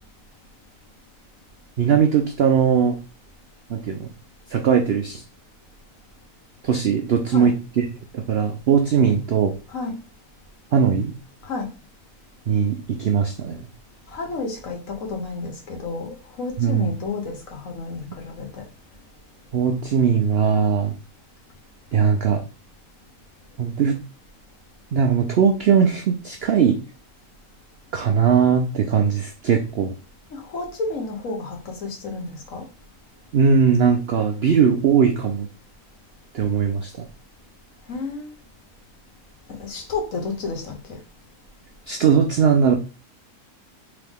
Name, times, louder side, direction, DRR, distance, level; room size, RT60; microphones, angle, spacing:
voice 1, 1.8-3.0 3.7-4.1 4.5-5.2 6.6-7.9 8.1-9.5 10.7-11.1 12.5-13.6 16.6-16.9 19.5-20.9 21.9-22.4 23.6-24.0 24.9-26.8 27.9-29.9 33.3-35.5 36.3-37.1 41.9-42.7, right 7 dB, 85° right, 4 dB, 0.5 m, -19 dB
voice 2, 14.1-14.8 15.1-18.5 30.3-32.6 37.9-38.3 39.6-40.7, left 3 dB, 60° left, 2 dB, 1.4 m, -31 dB
3.7 x 3.4 x 3.5 m, 0.33 s
omnidirectional pair, 1.7 m